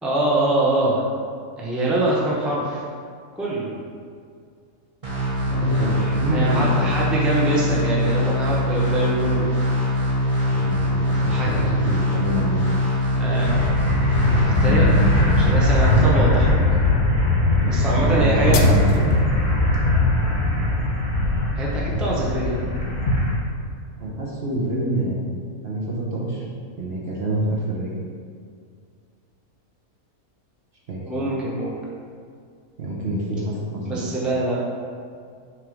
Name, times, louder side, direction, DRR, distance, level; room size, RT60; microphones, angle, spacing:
voice 1, 0.0-1.0 1.6-2.8 3.3-3.7 5.6-9.5 11.3-11.9 13.2-13.6 14.3-14.9 15.2-16.6 17.7-18.7 21.5-22.8 31.1-31.8 33.8-34.6, right 2 dB, ahead, -6 dB, 0.7 m, -24 dB
sound 1, 5.0-16.0, left 1 dB, 25° right, 1.4 m, -22 dB
voice 2, 5.5-6.9 10.5-12.6 16.2-16.3 17.6-19.1 24.0-26.4 26.8-27.9 30.9-31.0 32.8-34.0, right 1 dB, 45° right, -5 dB, 1.1 m, -26 dB
sound 2, 13.4-23.4, left 1 dB, 35° left, 1.3 m, -20 dB
sound 3, 14.0-19.2, left 3 dB, 70° left, 1.0 m, -33 dB
6.2 x 3.4 x 5.2 m, 2.2 s
omnidirectional pair, 1.6 m